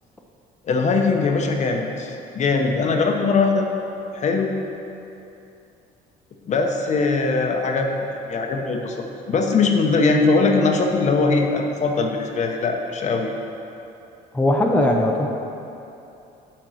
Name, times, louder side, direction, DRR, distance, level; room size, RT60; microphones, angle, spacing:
voice 1, 0.6-3.7 4.1-4.5 6.5-9.0 9.3-13.3, left 4 dB, 45° left, 3 dB, 0.9 m, -21 dB
voice 2, 14.3-15.3, left 1 dB, 10° left, 0 dB, 0.7 m, -19 dB
9.1 x 4.4 x 6.3 m, 2.8 s
cardioid pair, 110°, 17 cm